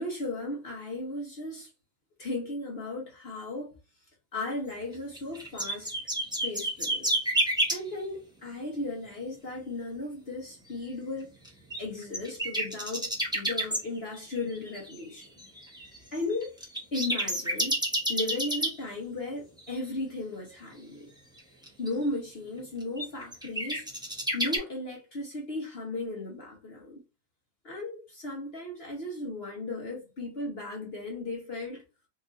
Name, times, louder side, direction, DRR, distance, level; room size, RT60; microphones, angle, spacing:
voice 1, 0.0-1.7 2.2-3.7 4.3-5.9 6.4-7.1 7.7-11.3 11.8-15.3 16.1-16.6 16.9-17.8 18.1-21.1 21.8-23.8 24.3-27.0 27.6-31.8, left 2 dB, 45° left, 0.8 m, -36 dB
sound 1, 4.9-7.8 11.4-13.8 14.1-18.7 19.6-19.7 21.4-21.9 23.0-24.6, right 1 dB, 5° right, 0.4 m, -29 dB
4.7 x 2.5 x 2.4 m
omnidirectional pair, 2.1 m